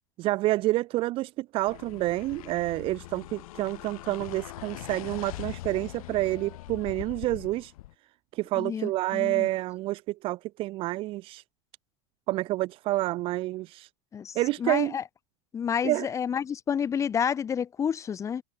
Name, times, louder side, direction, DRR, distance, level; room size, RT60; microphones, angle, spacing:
voice 1, 0.2-7.7 8.3-11.4 12.3-13.9 14.3-15.0 15.8-16.1, right 17 dB, 30° right, 0.4 m, -28 dB
sound 1, 1.6-7.9, left 17 dB, 75° left, 2.3 m, -42 dB
voice 2, 8.6-9.5 14.1-15.0 15.5-18.4, left 7 dB, 15° left, 0.6 m, -30 dB
supercardioid pair, 150°, 19 cm